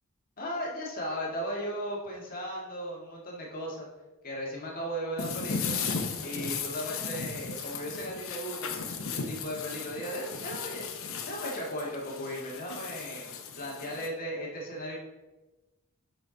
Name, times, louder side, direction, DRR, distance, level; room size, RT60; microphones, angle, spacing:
voice 1, 0.4-3.9 4.2-5.8 6.2-8.8 9.2-10.9 11.3-13.3 13.6-15.0, equal, 45° left, -3 dB, 1.8 m, -36 dB
sound 1, 5.2-14.1, left 5 dB, 70° left, 0.9 m, -36 dB
7.8 x 5.8 x 3.9 m, 1.1 s
head